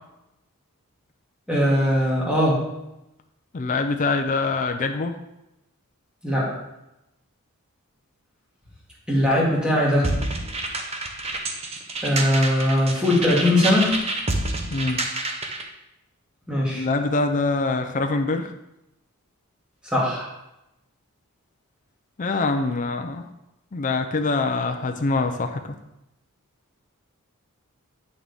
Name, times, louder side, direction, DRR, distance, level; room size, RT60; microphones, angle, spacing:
voice 1, 1.5-2.7 6.2-6.6 9.1-10.1 12.0-14.0 16.5-16.9 19.8-20.3, left 1 dB, 5° right, -5 dB, 2.2 m, -20 dB
voice 2, 3.5-5.2 14.7-15.1 16.7-18.5 22.2-23.3 23.7-25.8, left 3 dB, 35° left, 5 dB, 0.5 m, -24 dB
sound 1, 10.0-15.7, right 2 dB, 30° right, 0.8 m, -28 dB
8.9 x 6.3 x 3.5 m, 0.89 s
head